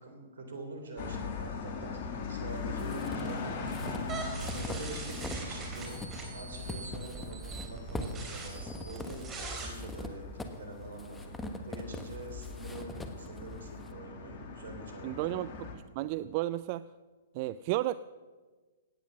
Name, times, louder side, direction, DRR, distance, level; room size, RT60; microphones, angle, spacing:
voice 1, 0.0-4.1 4.5-5.9 6.3-15.4, right 3 dB, 75° right, 5 dB, 3.5 m, -46 dB
sound 1, 1.0-15.7, left 4 dB, 50° left, 2.4 m, -41 dB
sound 2, 2.5-5.5 5.7-13.9, left 2 dB, 10° left, 1.3 m, -43 dB
sound 3, 4.1-9.7, right 4 dB, 20° right, 3.5 m, -42 dB
voice 2, 15.0-16.9 17.3-17.9, right 16 dB, 45° right, 16 dB, 0.3 m, -33 dB
17.0 x 9.1 x 6.2 m, 1.3 s
hypercardioid pair, 120°, 0 cm